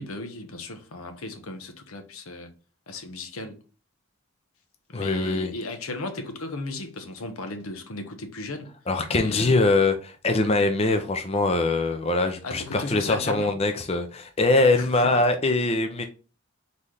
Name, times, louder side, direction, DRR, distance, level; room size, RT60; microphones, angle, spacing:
voice 1, 0.0-2.5 2.9-3.6 4.9-8.7 9.1-9.6 12.4-13.5 14.8-15.2, left 2 dB, 85° left, 0.9 m, -35 dB
voice 2, 4.9-5.5 8.9-16.0, left 2 dB, 30° left, 0.5 m, -23 dB
4.1 x 3.2 x 3.7 m
head